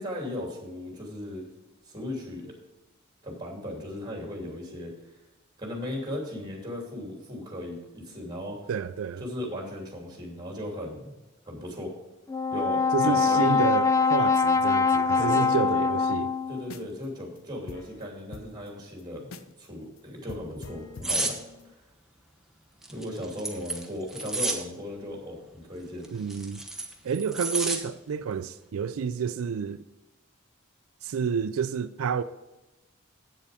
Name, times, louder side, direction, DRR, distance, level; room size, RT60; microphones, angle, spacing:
voice 1, 0.0-1.5 1.8-2.5 3.2-4.9 5.6-8.6 9.2-11.1 11.4-11.9 12.5-13.6 15.1-15.7 16.5-19.3 19.6-21.4 22.9-26.1, left 1 dB, 20° right, 2.9 m, -37 dB
voice 2, 8.7-9.2 12.9-16.3 26.1-26.6 27.0-29.8 31.0-32.2, right 6 dB, 85° right, 0.4 m, -29 dB
Brass instrument, 12.3-16.7, left 4 dB, 15° left, 0.3 m, -23 dB
Old School Hip-Hop Lead Loop, 16.7-17.1 17.4-17.5 17.7-19.7 20.0-20.1 20.3-21.7, left 3 dB, 75° left, 0.7 m, -45 dB
sound 1, 21.0-21.4 22.8-24.6 26.0-27.8 28.2-28.4, right 2 dB, ahead, 1.1 m, -30 dB
8.5 x 7.4 x 5.0 m
head